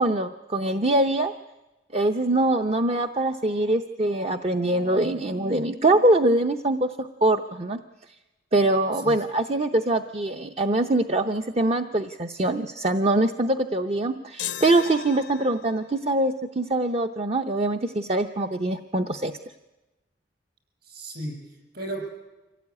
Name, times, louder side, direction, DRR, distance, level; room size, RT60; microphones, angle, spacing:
voice 1, 0.0-1.3 1.9-7.8 8.5-19.3, right 2 dB, 35° right, 6 dB, 0.7 m, -23 dB
sound 1, 14.4-15.9, left 11 dB, 90° left, 0.9 m, -36 dB
voice 2, 20.8-22.0, right 1 dB, 60° right, 2 dB, 6.8 m, -35 dB
25.0 x 17.0 x 9.6 m, 1.1 s
head